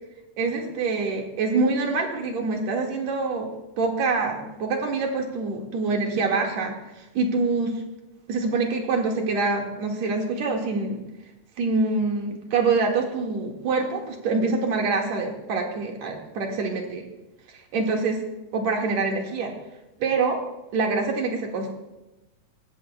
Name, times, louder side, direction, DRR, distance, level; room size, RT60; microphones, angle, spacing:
voice 1, 0.4-3.5 3.8-7.8 8.3-11.0 11.6-17.1 17.7-18.2 18.5-19.6 20.0-20.4 20.7-21.7, right 4 dB, 55° right, 1 dB, 2.7 m, -25 dB
20.0 x 15.5 x 2.2 m, 1.0 s
omnidirectional pair, 4.2 m